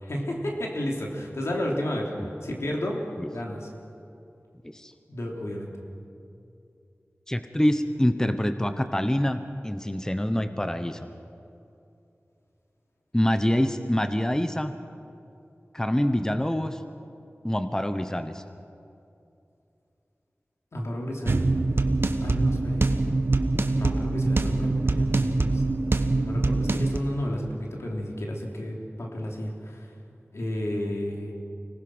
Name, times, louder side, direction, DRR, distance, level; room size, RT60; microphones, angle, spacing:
voice 1, 0.0-2.1 2.4-3.0 3.3-3.7 5.1-5.7 20.7-21.4 22.2-22.8 23.8-25.6 26.2-29.9 30.3-31.3, equal, 85° left, -1 dB, 3.3 m, -32 dB
voice 2, 7.3-9.4 9.6-11.0 13.1-14.7 15.7-16.8 17.4-18.4, left 1 dB, 15° left, 9 dB, 1.0 m, -25 dB
sound 1, 21.3-27.0, right 2 dB, 60° right, 1.2 m, -24 dB
25.0 x 19.0 x 6.2 m, 2.7 s
wide cardioid pair, 60°, 5 cm